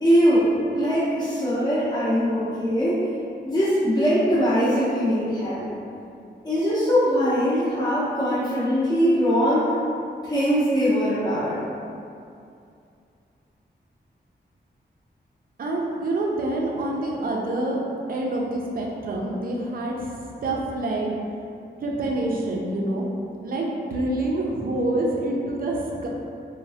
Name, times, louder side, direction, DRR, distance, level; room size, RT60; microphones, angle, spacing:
voice 1, 0.0-3.1 3.4-5.7 6.4-9.7 10.2-11.6, equal, 20° left, -11 dB, 0.5 m, -21 dB
voice 2, 15.6-17.8 18.1-20.1 20.4-21.1 21.8-23.0 23.4-26.1, right 1 dB, 55° right, -1 dB, 0.4 m, -26 dB
3.0 x 2.0 x 2.7 m, 2.5 s
wide cardioid pair, 165°, 18 cm